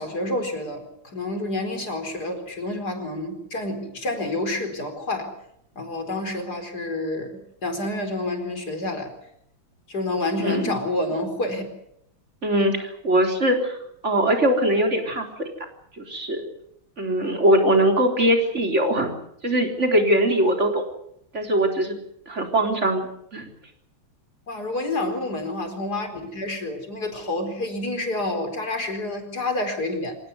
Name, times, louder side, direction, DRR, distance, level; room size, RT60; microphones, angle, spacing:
voice 1, 0.0-5.3 5.8-9.1 9.9-11.6 24.5-30.2, left 2 dB, 50° left, 5 dB, 4.9 m, -28 dB
voice 2, 10.4-10.7 12.4-13.8 14.0-15.5 16.0-16.4 17.0-19.1 19.4-20.8 21.3-22.0 22.3-23.5, right 1 dB, 35° right, 3 dB, 4.1 m, -21 dB
26.0 x 17.0 x 9.5 m, 0.76 s
omnidirectional pair, 2.2 m